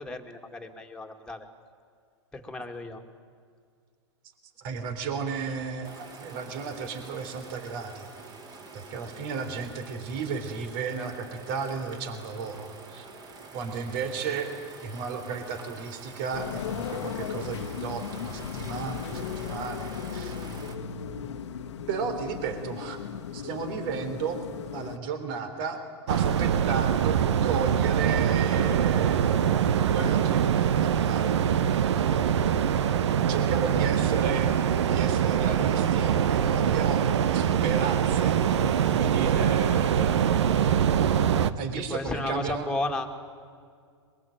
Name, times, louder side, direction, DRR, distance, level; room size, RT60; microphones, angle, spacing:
voice 1, 0.0-1.5 2.3-3.0 33.9-34.0 41.9-43.1, left 2 dB, 5° left, 3 dB, 2.5 m, -34 dB
voice 2, 4.6-8.1 8.7-13.1 13.5-14.5 14.8-20.3 21.9-23.0 23.3-24.4 24.7-25.8 26.1-29.6 29.9-31.4 33.3-34.6 34.8-38.4 38.9-40.9 41.6-42.7, right 6 dB, 50° right, 8 dB, 3.6 m, -34 dB
sound 1, 5.8-20.8, right 3 dB, 25° right, 3.8 m, -46 dB
sound 2, 16.3-25.0, left 7 dB, 75° left, 1.3 m, -36 dB
sound 3, 26.1-41.5, right 8 dB, 70° right, 1.1 m, -23 dB
23.0 x 22.5 x 9.0 m, 2.1 s
hypercardioid pair, 110°, 15 cm